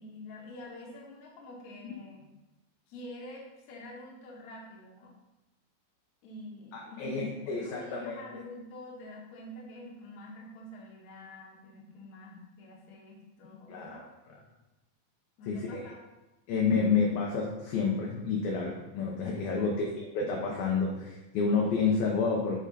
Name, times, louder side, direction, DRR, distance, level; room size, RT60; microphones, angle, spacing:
voice 1, 0.0-2.3 2.9-5.1 6.2-14.0 15.4-16.0 19.5-19.7 20.1-20.2, left 1 dB, 55° left, -3 dB, 2.3 m, -47 dB
voice 2, 6.7-8.2 13.7-14.4 15.5-15.8 16.5-22.6, left 5 dB, 70° left, -1 dB, 2.3 m, -29 dB
8.8 x 6.4 x 4.3 m, 1.0 s
omnidirectional pair, 5.3 m